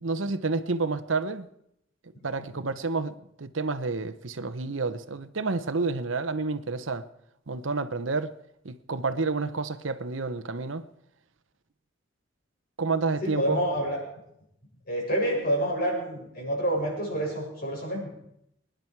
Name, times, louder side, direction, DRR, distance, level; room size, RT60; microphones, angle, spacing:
voice 1, 0.0-1.5 2.2-7.1 7.5-8.3 8.6-10.8 12.8-13.6, right 3 dB, 80° right, 0.9 m, -29 dB
voice 2, 13.2-14.0 14.9-18.1, right 1 dB, 50° left, 6.8 m, -28 dB
24.0 x 10.5 x 4.7 m
head